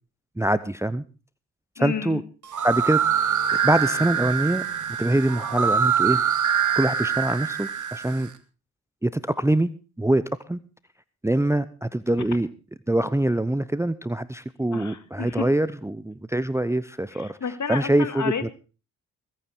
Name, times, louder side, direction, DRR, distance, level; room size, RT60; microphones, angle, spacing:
voice 1, 0.4-1.0 1.8-2.2 2.6-3.0 3.6-4.6 5.0-6.2 6.8-8.3 9.0-9.7 10.0-10.6 11.2-12.5 12.9-17.4 17.7-18.5, right 1 dB, 5° right, 16 dB, 0.8 m, -24 dB
voice 2, 1.8-2.2 12.2-12.3 14.7-15.5 17.1-18.5, left 6 dB, 45° left, 12 dB, 2.2 m, -31 dB
sound 1, 2.4-8.3, right 7 dB, 45° right, 2.2 m, -24 dB
21.5 x 9.3 x 4.5 m, 0.34 s
hypercardioid pair, 45°, 40 cm